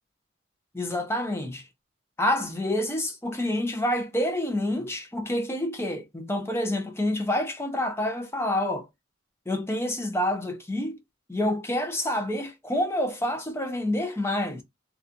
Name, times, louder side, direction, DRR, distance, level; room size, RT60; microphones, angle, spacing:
voice 1, 0.7-1.7 2.2-8.9 9.5-11.0 11.3-14.6, left 1 dB, 15° left, 0.6 m, -28 dB
2.4 x 2.3 x 2.7 m
head